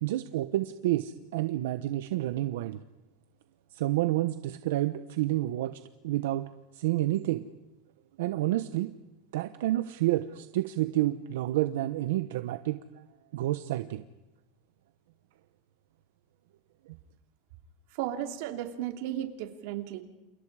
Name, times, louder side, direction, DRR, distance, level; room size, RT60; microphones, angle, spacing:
voice 1, 0.0-2.8 3.7-6.5 6.7-7.4 8.2-8.9 9.3-12.8 13.3-14.0 16.9-17.0, right 15 dB, 80° right, 10 dB, 1.0 m, -29 dB
voice 2, 18.0-20.0, right 12 dB, 60° right, 5 dB, 3.0 m, -34 dB
29.5 x 28.5 x 5.0 m, 1.0 s
supercardioid pair, 165°, 0 cm